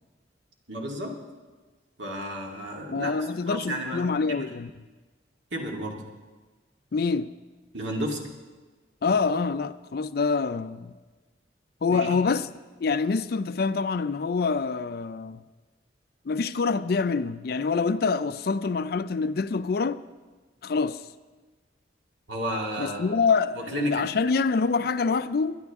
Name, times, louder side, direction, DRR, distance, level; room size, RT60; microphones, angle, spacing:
voice 1, 0.7-1.1 2.0-4.0 4.3-4.5 5.5-6.0 7.7-8.2 11.9-12.2 22.3-23.2 23.7-24.0, equal, 80° right, 2.2 m, -32 dB
voice 2, 2.9-4.7 6.9-7.3 9.0-10.9 11.8-12.5 12.8-15.4 16.3-20.0 20.6-21.0 22.8-25.6, left 4 dB, 55° left, 0.4 m, -26 dB
21.5 x 11.0 x 3.6 m
head